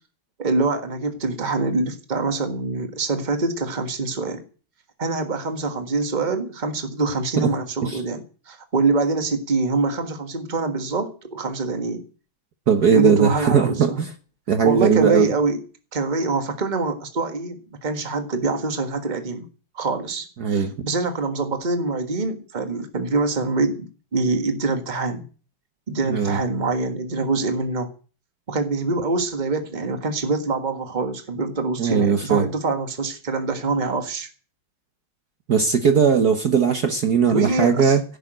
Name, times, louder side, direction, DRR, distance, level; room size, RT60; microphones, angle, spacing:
voice 1, 0.4-4.4 5.0-12.0 12.9-14.0 14.6-15.6 15.9-19.5 19.7-25.2 25.9-27.9 28.5-34.3 37.3-38.0, right 3 dB, 25° right, 1.5 m, -25 dB
voice 2, 12.7-14.1 14.5-15.3 20.4-20.7 26.1-26.4 31.8-32.5 35.5-38.0, right 6 dB, 55° right, 1.5 m, -19 dB
16.0 x 6.4 x 9.0 m
omnidirectional pair, 2.3 m